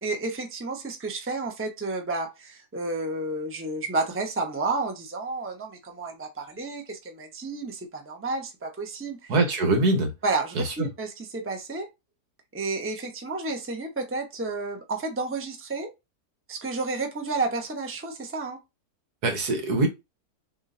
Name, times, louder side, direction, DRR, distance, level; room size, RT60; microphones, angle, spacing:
voice 1, 0.0-9.3 10.2-11.9 12.5-15.9 16.5-18.6, right 3 dB, 10° right, 0.7 m, -31 dB
voice 2, 9.3-10.1 10.5-10.9 19.2-19.9, right 2 dB, 80° right, 1.8 m, -23 dB
6.6 x 2.8 x 2.6 m
omnidirectional pair, 1.6 m